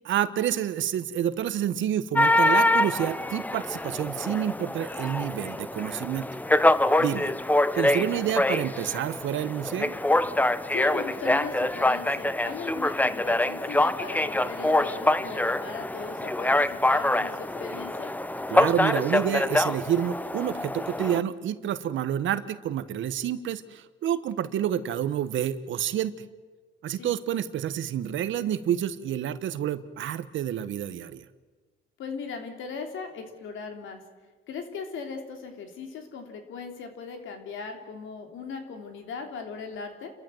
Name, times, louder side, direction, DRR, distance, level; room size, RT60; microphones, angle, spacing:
voice 1, 0.0-6.3 7.0-7.3 7.7-9.9 18.5-26.3 26.8-31.3, right 10 dB, 75° right, 13 dB, 1.3 m, -29 dB
sound 1, 2.2-21.2, left 1 dB, 10° left, 0.7 m, -25 dB
voice 2, 10.7-18.1 26.9-27.2 32.0-34.0 34.5-40.1, left 5 dB, 80° left, 5 dB, 3.4 m, -38 dB
30.0 x 14.0 x 7.9 m, 1.3 s
cardioid pair, 90°, 20 cm